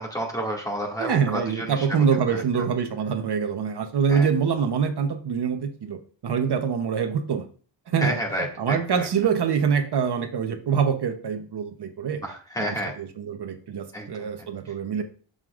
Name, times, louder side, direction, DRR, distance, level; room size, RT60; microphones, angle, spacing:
voice 1, 0.0-1.9 2.3-2.4 4.1-4.3 8.0-9.1 12.2-12.9 13.9-14.3, equal, 10° left, -1 dB, 2.2 m, -30 dB
voice 2, 1.0-7.5 7.9-12.2 12.6-15.0, right 6 dB, 60° right, 5 dB, 1.0 m, -25 dB
11.0 x 6.9 x 2.5 m, 0.41 s
wide cardioid pair, 145°, 45 cm